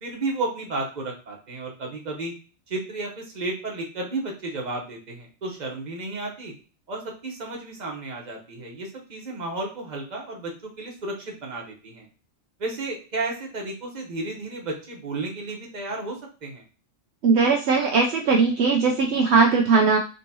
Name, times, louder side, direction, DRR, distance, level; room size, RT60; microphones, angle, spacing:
voice 1, 0.0-2.3 2.7-6.5 6.9-12.1 12.6-16.6, right 2 dB, 40° right, 0 dB, 1.1 m, -33 dB
voice 2, 17.2-20.0, right 4 dB, 70° right, 1 dB, 0.8 m, -19 dB
3.8 x 3.6 x 2.7 m, 0.35 s
omnidirectional pair, 1.2 m